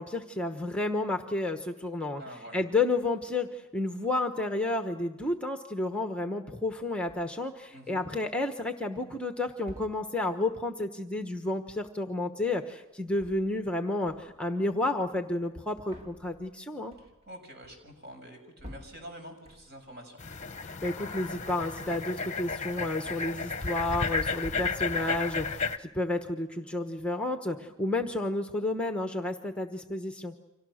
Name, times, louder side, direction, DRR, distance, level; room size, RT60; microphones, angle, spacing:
voice 1, 0.0-2.2 2.5-16.9 20.6-30.3, left 2 dB, 5° left, 6 dB, 1.1 m, -31 dB
voice 2, 2.2-2.6 7.7-8.0 17.0-20.2, equal, 50° right, 4 dB, 6.8 m, -46 dB
sound 1, 7.1-7.5 8.3-8.8 9.6-10.3 12.9-13.8 14.1-14.6 15.4-20.0 20.3-21.5 21.8-22.3 22.6-24.2 24.5-25.6, left 1 dB, 30° right, 1.9 m, -53 dB
sound 2, 20.2-25.8, left 4 dB, 35° left, 1.0 m, -33 dB
30.0 x 26.0 x 6.4 m, 1.0 s
head